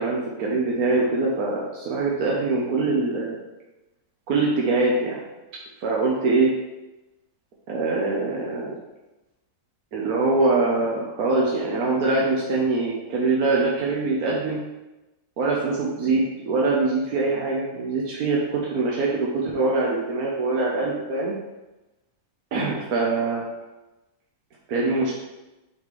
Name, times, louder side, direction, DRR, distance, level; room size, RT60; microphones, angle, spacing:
voice 1, 0.0-3.4 4.3-5.2 5.8-6.5 7.7-8.7 9.9-14.6 15.4-21.3 22.5-23.5 24.7-25.1, right 3 dB, 70° right, -3 dB, 1.4 m, -23 dB
8.5 x 4.3 x 3.2 m, 1.0 s
omnidirectional pair, 1.7 m